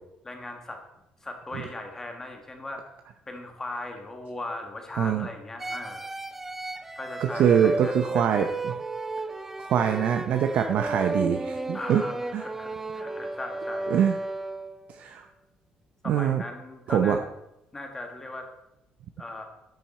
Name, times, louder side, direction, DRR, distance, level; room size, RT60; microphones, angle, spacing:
voice 1, 0.2-0.8 1.2-2.8 3.3-6.1 6.9-8.5 11.7-13.9 16.0-17.2 17.7-18.5 19.2-19.4, left 2 dB, 15° left, 4 dB, 1.6 m, -38 dB
voice 2, 5.0-5.3 7.2-8.7 9.7-12.0 12.3-12.4 13.9-14.2 14.9-15.3 16.1-16.4 16.9-17.2, right 8 dB, 55° right, 6 dB, 0.7 m, -24 dB
sound 1, 5.6-14.9, right 2 dB, 10° right, 0.4 m, -34 dB
10.5 x 9.2 x 4.3 m, 0.89 s
cardioid pair, 155°, 3 cm